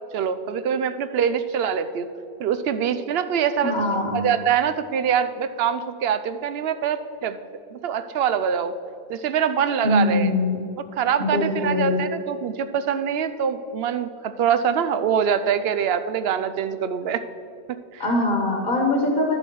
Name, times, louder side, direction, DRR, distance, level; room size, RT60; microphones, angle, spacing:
voice 1, 0.1-2.1 2.4-7.4 7.7-8.7 9.1-10.3 10.9-17.2 17.9-18.0, right 8 dB, 75° right, 11 dB, 0.8 m, -24 dB
voice 2, 3.6-4.2 9.8-10.6 11.2-12.1 18.0-19.4, left 2 dB, 55° left, 0 dB, 1.4 m, -22 dB
11.5 x 5.2 x 6.0 m, 2.6 s
omnidirectional pair, 1.1 m